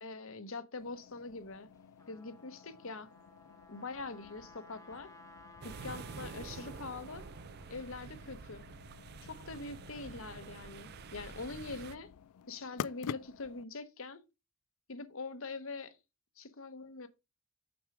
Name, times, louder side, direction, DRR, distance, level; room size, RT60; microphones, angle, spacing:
voice 1, 0.0-1.7 2.1-3.1 3.7-5.1 5.6-7.3 7.7-8.6 9.2-12.1 12.4-14.2 14.9-16.0 16.4-17.1, left 3 dB, 60° left, 0.9 m, -43 dB
sound 1, 0.8-13.6, left 8 dB, 85° left, 0.3 m, -50 dB
Trumpet, 1.7-7.7, left 2 dB, 15° left, 1.0 m, -58 dB
sound 2, 5.6-11.9, right 5 dB, 45° right, 0.3 m, -48 dB
6.2 x 4.7 x 4.9 m
head